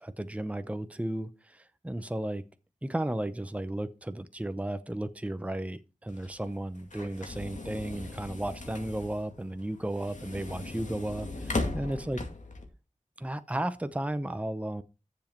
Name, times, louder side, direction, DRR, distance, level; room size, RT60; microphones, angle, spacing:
voice 1, 0.0-2.4 2.8-12.2 13.2-14.8, right 1 dB, 10° right, 0.8 m, -34 dB
sound 1, 6.1-12.6, left 2 dB, 75° left, 2.4 m, -38 dB
10.5 x 7.3 x 4.5 m
wide cardioid pair, 60°, 13 cm